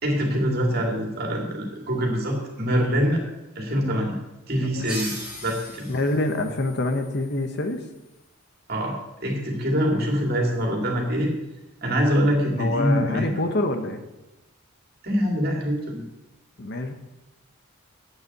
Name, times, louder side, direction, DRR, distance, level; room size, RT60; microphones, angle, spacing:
voice 1, 0.0-3.2 3.6-4.1 4.5-5.9 8.7-8.9 9.2-11.3 11.8-13.3 15.0-16.0, equal, 45° right, 0 dB, 2.7 m, -24 dB
sound 1, 4.8-8.1, right 1 dB, 5° right, 3.8 m, -39 dB
voice 2, 5.9-7.8 12.6-14.0 16.6-16.9, left 2 dB, 50° left, 7 dB, 1.1 m, -26 dB
8.3 x 7.3 x 8.1 m, 1.0 s
head